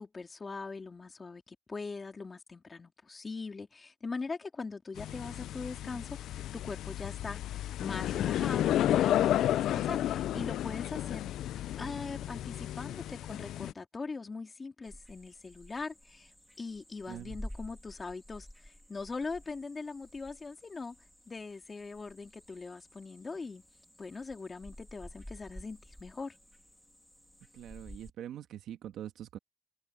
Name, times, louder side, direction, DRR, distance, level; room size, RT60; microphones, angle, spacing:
voice 1, 0.0-7.4 7.8-11.3 11.8-16.3 16.6-21.0 21.3-23.6 24.0-26.4, left 4 dB, 30° left, 3.4 m, -41 dB
sound 1, 5.0-13.7, left 12 dB, 80° left, 0.3 m, -32 dB
sound 2, 14.8-28.1, equal, 5° left, 2.6 m, -51 dB
voice 2, 17.1-17.4 27.5-29.4, right 11 dB, 80° right, 1.5 m, -43 dB
cardioid pair, 90°, 0 cm